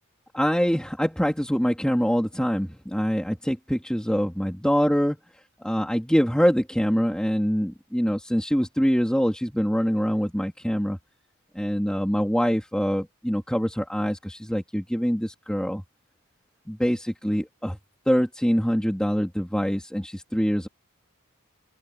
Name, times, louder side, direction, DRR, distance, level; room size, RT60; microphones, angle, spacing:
voice 1, 0.3-5.2 5.6-11.0 11.5-15.8 16.7-17.8 18.1-20.7, equal, 5° left, 2.8 m, -24 dB
open air
head